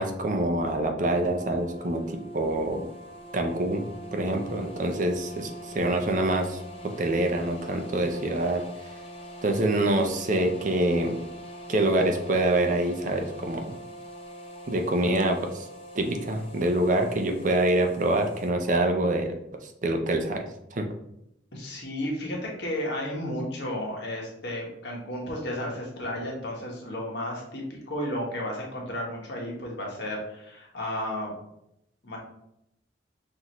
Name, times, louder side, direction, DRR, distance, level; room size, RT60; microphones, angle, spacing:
voice 1, 0.0-2.0 2.3-2.9 3.3-3.8 4.1-5.5 5.7-8.6 9.4-11.2 11.7-13.7 14.7-15.5 15.9-19.4 19.8-20.4 20.7-20.8, right 1 dB, 45° right, 4 dB, 0.5 m, -25 dB
sound 1, 1.0-18.5, equal, 30° left, 0.5 m, -43 dB
voice 2, 21.5-31.3 32.0-32.2, left 1 dB, 65° left, -2 dB, 1.3 m, -33 dB
5.8 x 2.6 x 3.0 m, 0.80 s
head